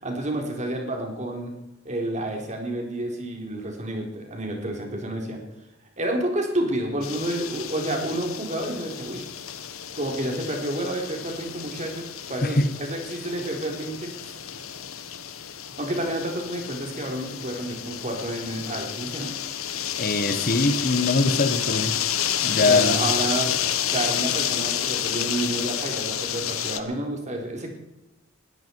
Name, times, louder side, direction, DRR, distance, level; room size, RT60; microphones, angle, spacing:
voice 1, 0.0-1.5 1.8-5.4 6.0-9.3 10.0-14.4 15.8-19.3 22.6-23.5 23.8-27.7, right 1 dB, 35° right, 2 dB, 4.0 m, -30 dB
sound 1, 7.0-26.8, left 10 dB, 80° left, 1.2 m, -30 dB
voice 2, 20.0-22.0 22.4-23.0, left 3 dB, 45° left, 9 dB, 1.3 m, -22 dB
21.0 x 13.5 x 4.7 m, 0.95 s
head